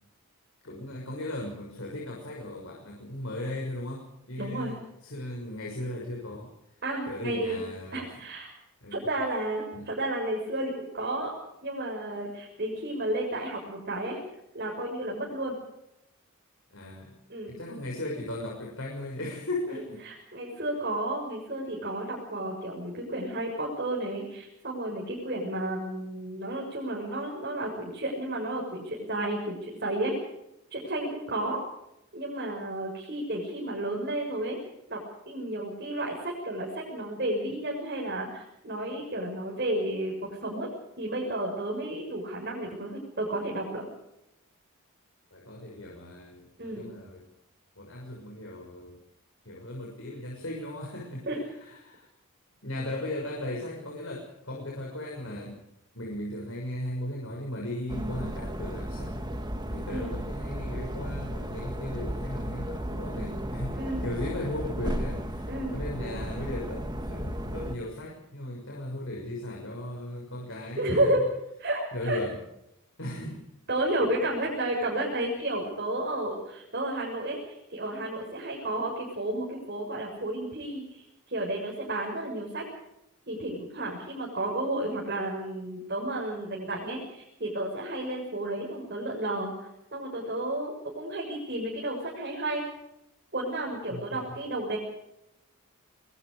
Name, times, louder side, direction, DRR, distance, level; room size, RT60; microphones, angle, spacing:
voice 1, 0.6-6.5 7.0-8.1 8.8-9.0 9.7-9.8 16.7-17.1 17.5-20.0 20.5-20.7 45.3-47.3 47.7-49.0 49.4-52.1 52.6-55.6 55.9-59.3 59.7-71.2 71.9-72.4 73.0-73.4 73.8-73.9 93.9-94.4, left 1 dB, 65° left, -1 dB, 6.5 m, -37 dB
voice 2, 4.4-4.7 6.8-7.6 7.9-8.5 8.9-11.3 11.6-14.2 14.5-15.5 17.3-17.6 20.0-30.1 30.7-31.6 32.1-34.6 34.9-40.7 41.0-43.9 46.6-46.9 51.2-51.4 59.9-60.2 63.7-64.0 65.5-65.7 70.8-71.3 71.6-72.2 73.7-82.6 83.3-92.6 93.3-94.8, right 1 dB, 45° right, -1 dB, 6.8 m, -32 dB
sound 1, 57.9-67.7, equal, 20° right, 2.4 m, -34 dB
26.0 x 23.5 x 5.0 m, 0.85 s
head